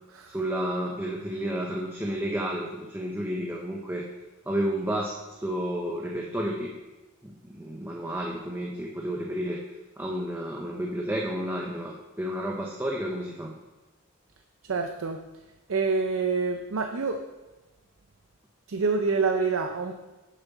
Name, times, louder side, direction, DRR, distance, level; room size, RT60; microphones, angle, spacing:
voice 1, 0.3-4.1 4.5-6.7 7.2-9.6 10.0-13.6, right 1 dB, 10° right, -1 dB, 0.7 m, -31 dB
voice 2, 14.7-15.2 15.7-17.2 18.7-19.9, right 4 dB, 70° right, 4 dB, 0.6 m, -26 dB
9.5 x 7.3 x 4.1 m, 1.1 s
head